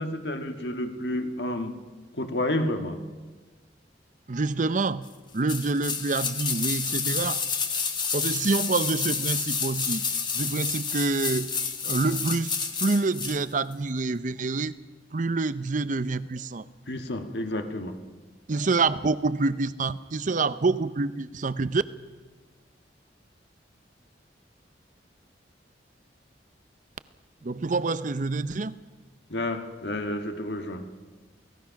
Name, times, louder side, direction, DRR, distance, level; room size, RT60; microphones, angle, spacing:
voice 1, 0.0-1.8 2.1-3.0 16.9-18.0 29.3-30.9, left 1 dB, 70° left, 6 dB, 1.8 m, -30 dB
voice 2, 4.3-5.1 5.3-7.4 8.1-10.0 10.3-11.5 11.8-14.8 15.1-16.6 18.5-21.8 27.4-28.8, right 3 dB, 45° right, 15 dB, 0.7 m, -27 dB
sound 1, 5.5-13.4 13.7-13.8, left 5 dB, 25° left, 1.5 m, -29 dB
29.0 x 18.0 x 5.9 m, 1.3 s
head